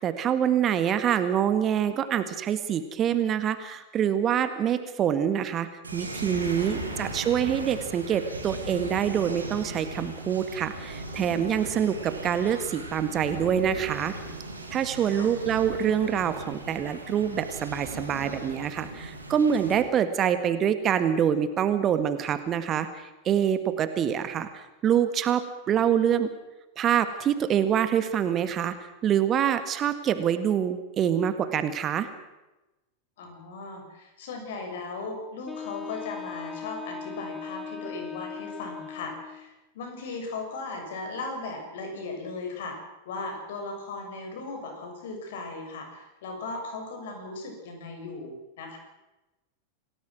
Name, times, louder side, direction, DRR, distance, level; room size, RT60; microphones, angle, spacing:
voice 1, 0.0-14.1 14.7-26.3 26.8-32.1, right 9 dB, 30° right, 11 dB, 1.8 m, -26 dB
sound 1, 5.8-19.8, right 2 dB, 80° right, 5.2 m, -38 dB
voice 2, 6.5-7.1 15.1-15.3 33.2-42.8 43.0-48.8, left 3 dB, 55° left, 4 dB, 6.8 m, -37 dB
Wind instrument woodwind instrument, 35.5-39.6, left 7 dB, 10° left, 1.0 m, -39 dB
28.0 x 18.5 x 6.1 m, 1.0 s
figure-of-eight pair, 90°, 0 cm